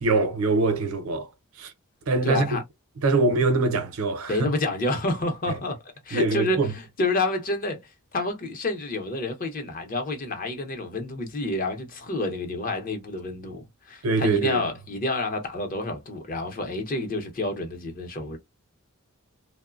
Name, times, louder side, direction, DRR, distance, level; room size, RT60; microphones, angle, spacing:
voice 1, 0.0-1.3 1.6-1.7 2.1-2.6 3.0-4.5 6.1-6.7 14.0-14.6, right 3 dB, 85° right, 0.6 m, -23 dB
voice 2, 2.2-2.6 4.3-5.8 6.0-7.8 8.1-18.4, left 2 dB, 40° left, 0.7 m, -29 dB
3.0 x 2.1 x 2.3 m
head